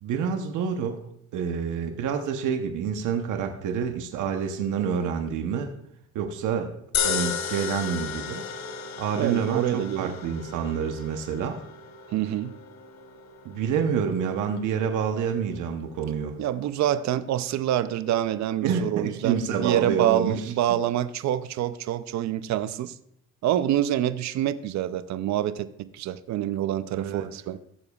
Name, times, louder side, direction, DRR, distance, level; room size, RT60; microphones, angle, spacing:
voice 1, 0.0-1.0 1.3-5.7 6.1-6.7 7.0-8.4 9.0-11.6 13.4-16.4 18.6-20.8 26.9-27.3, right 7 dB, 85° right, 5 dB, 0.9 m, -28 dB
sound 1, 6.9-19.3, left 7 dB, 65° left, 1.0 m, -36 dB
voice 2, 9.2-10.1 12.1-12.5 16.4-22.9 23.4-27.6, right 12 dB, 65° right, 14 dB, 0.5 m, -26 dB
15.0 x 6.9 x 2.3 m, 0.73 s
cardioid pair, 90°, 30 cm